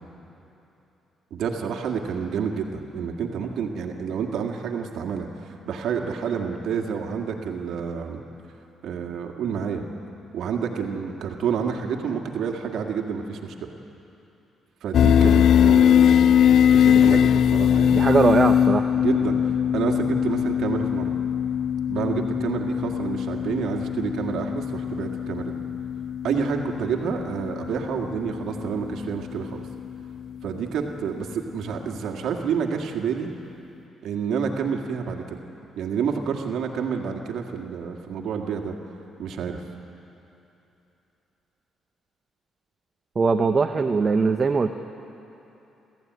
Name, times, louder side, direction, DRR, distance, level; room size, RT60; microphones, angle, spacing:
voice 1, 1.3-8.2 8.8-9.8 10.3-13.7 14.8-16.4 16.7-17.2 17.5-18.2 19.0-21.2 21.9-25.6 26.2-29.6 30.4-33.3 34.0-35.4 35.8-38.8 39.2-39.6, right 6 dB, 75° right, 2 dB, 2.0 m, -29 dB
sound 1, 14.9-30.0, left 9 dB, 65° left, 0.4 m, -21 dB
voice 2, 17.9-18.9 43.2-44.7, right 4 dB, 35° right, 6 dB, 0.9 m, -21 dB
30.0 x 14.0 x 9.6 m, 3.0 s
cardioid pair, 90°, 0 cm